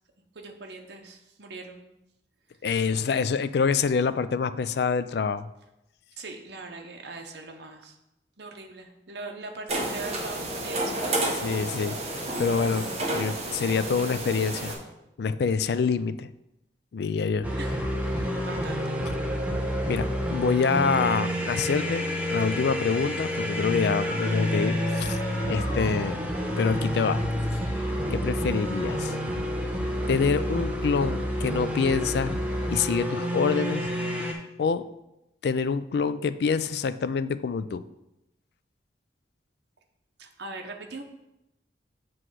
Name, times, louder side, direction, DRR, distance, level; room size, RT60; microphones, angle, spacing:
voice 1, 0.3-1.8 6.2-8.0 8.4-11.3 17.6-19.0 25.5-25.8 40.2-41.0, right 3 dB, 70° right, 3 dB, 0.9 m, -41 dB
voice 2, 2.6-5.5 11.4-12.0 12.4-12.9 13.1-14.7 15.2-16.3 16.9-17.5 19.9-25.2 25.5-26.2 26.6-27.2 27.6-29.1 30.1-32.3 32.7-33.9 34.6-34.9 35.4-37.8, left 5 dB, 65° left, 13 dB, 0.3 m, -26 dB
sound 1, 9.7-14.7, right 1 dB, 35° right, 1.2 m, -30 dB
sound 2, 17.4-34.3, equal, 10° right, 0.7 m, -29 dB
sound 3, 23.9-26.6, left 3 dB, 30° left, 0.7 m, -43 dB
7.8 x 3.1 x 6.1 m, 0.89 s
head